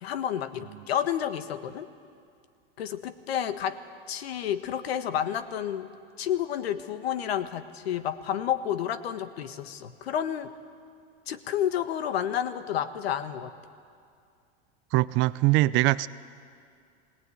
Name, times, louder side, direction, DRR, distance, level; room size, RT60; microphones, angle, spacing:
voice 1, 0.0-1.9 2.8-3.8 4.1-5.9 6.2-10.5 11.3-13.5, left 10 dB, 90° left, 11 dB, 1.3 m, -30 dB
voice 2, 14.9-16.1, right 19 dB, 40° right, 17 dB, 0.5 m, -22 dB
19.0 x 18.0 x 9.3 m, 2.3 s
supercardioid pair, 130°, 30 cm